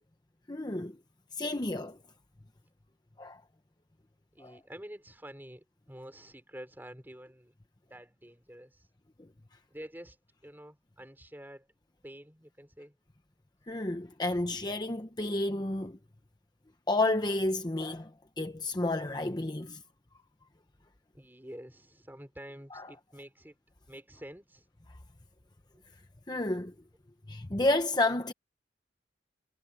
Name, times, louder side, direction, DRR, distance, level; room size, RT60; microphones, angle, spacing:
voice 1, 0.5-0.9 1.4-2.0 3.2-3.4 4.4-4.5 13.7-16.0 16.9-18.1 18.4-19.8 22.7-22.8 26.3-26.7 27.3-28.3, left 2 dB, 25° left, 0.9 m, -30 dB
voice 2, 4.3-7.5 7.9-8.9 9.7-10.2 10.4-11.7 12.0-13.0 21.1-23.5 23.9-24.7 25.7-25.8, equal, 10° right, 3.6 m, -48 dB
head